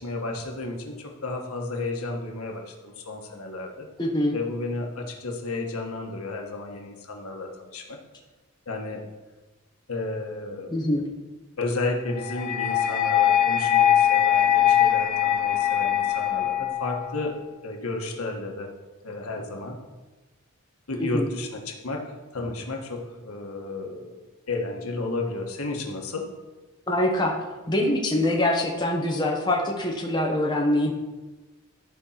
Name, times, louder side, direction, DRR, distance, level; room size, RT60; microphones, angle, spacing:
voice 1, 0.0-3.9 4.3-8.0 8.7-9.0 9.9-10.7 11.6-17.4 17.6-18.7 19.0-19.8 20.9-22.0 22.3-24.2 24.5-26.2, left 2 dB, 85° left, 1 dB, 1.5 m, -32 dB
voice 2, 4.0-4.4 10.7-11.1 21.1-21.3 26.9-27.3 27.7-30.9, left 1 dB, 20° left, 0 dB, 1.1 m, -24 dB
sound 1, 12.2-17.2, left 10 dB, 35° left, 0.7 m, -22 dB
13.0 x 4.3 x 5.8 m, 1.2 s
head